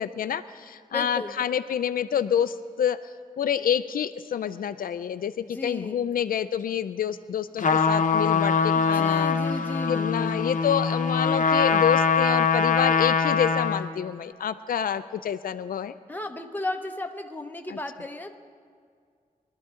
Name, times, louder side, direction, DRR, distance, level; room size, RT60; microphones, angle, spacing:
voice 1, 0.0-9.3 9.9-15.9, left 8 dB, 85° left, 12 dB, 0.4 m, -28 dB
voice 2, 0.9-1.4 5.5-6.1 8.7-10.4 16.1-18.4, left 2 dB, 15° left, 4 dB, 1.0 m, -35 dB
Trumpet, 7.6-13.9, left 5 dB, 65° left, 0.9 m, -23 dB
23.0 x 12.0 x 3.8 m, 2.1 s
wide cardioid pair, 90°, 14 cm